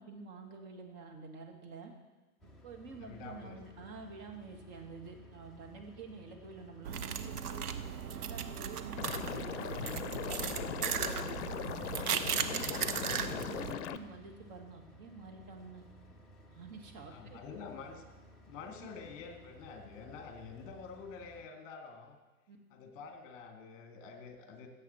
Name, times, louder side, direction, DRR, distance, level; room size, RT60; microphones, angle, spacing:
voice 1, 0.0-1.9 2.6-7.7 8.1-12.0 12.4-15.9 16.5-17.4 22.5-22.6, right 4 dB, 35° right, 2 dB, 2.0 m, -48 dB
sound 1, 2.4-21.5, equal, ahead, 0.4 m, -57 dB
voice 2, 2.9-3.6 8.9-9.0 13.0-13.4 17.1-18.0 18.5-22.2 22.7-24.7, left 5 dB, 30° left, 3 dB, 2.1 m, -48 dB
sound 2, 6.9-13.7, right 7 dB, 80° right, 0.9 m, -36 dB
Liquid, 9.0-14.0, left 11 dB, 50° left, 0.7 m, -40 dB
16.5 x 7.5 x 4.4 m, 1.2 s
hypercardioid pair, 125°, 44 cm